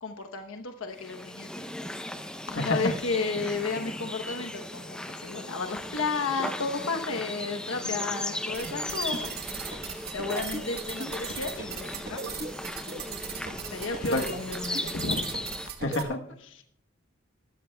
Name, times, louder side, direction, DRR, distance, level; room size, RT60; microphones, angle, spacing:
voice 1, 0.0-1.6 2.5-9.9 10.1-12.2 13.3-15.3 15.7-15.8, left 4 dB, 85° left, 5 dB, 1.0 m, -33 dB
sound 1, 1.0-15.7, left 1 dB, 5° left, 0.6 m, -37 dB
voice 2, 2.5-2.9 14.1-14.2 15.8-16.7, left 2 dB, 65° left, 5 dB, 1.2 m, -29 dB
sound 2, 8.5-16.0, right 5 dB, 50° right, 1.2 m, -38 dB
20.5 x 13.5 x 2.3 m, 0.63 s
head